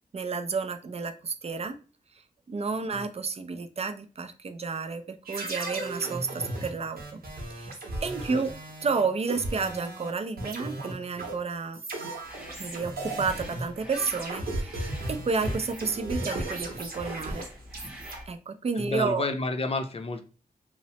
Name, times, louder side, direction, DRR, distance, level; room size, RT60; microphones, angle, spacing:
voice 1, 0.1-1.8 2.5-7.2 7.6-7.7 8.0-8.5 8.8-11.8 12.6-14.7 15.1-17.5 18.3-19.3, right 4 dB, 40° right, 8 dB, 0.4 m, -31 dB
sound 1, 5.2-10.1 10.4-18.1, right 2 dB, 80° right, 0.8 m, -36 dB
sound 2, 12.2-18.3, equal, 5° right, 0.7 m, -46 dB
voice 2, 18.8-20.2, left 3 dB, 40° left, 7 dB, 0.4 m, -30 dB
3.0 x 2.0 x 2.8 m, 0.36 s
wide cardioid pair, 85°, 16 cm